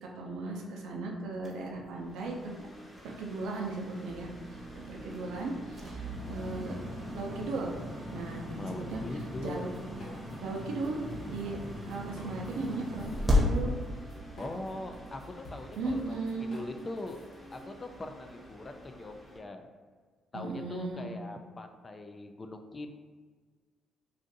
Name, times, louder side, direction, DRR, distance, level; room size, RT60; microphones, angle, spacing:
voice 1, 0.0-2.7 3.0-4.3 4.9-6.8 7.1-7.8 8.1-9.0 9.4-9.7 10.4-11.6 11.9-13.7 15.7-16.6 20.3-21.1, right 3 dB, 85° right, 0 dB, 0.5 m, -37 dB
sound 1, 1.3-19.4, equal, 10° left, 0.8 m, -52 dB
sound 2, 4.1-15.1, left 1 dB, 20° right, 0.8 m, -35 dB
voice 2, 8.6-9.6 14.4-17.2 17.5-19.7 20.3-22.9, left 2 dB, 30° left, 6 dB, 0.3 m, -41 dB
sound 3, 8.9-10.6 10.8-17.6, left 1 dB, 70° left, 0.9 m, -49 dB
2.5 x 2.5 x 3.9 m, 1.5 s
cardioid pair, 90°, 0 cm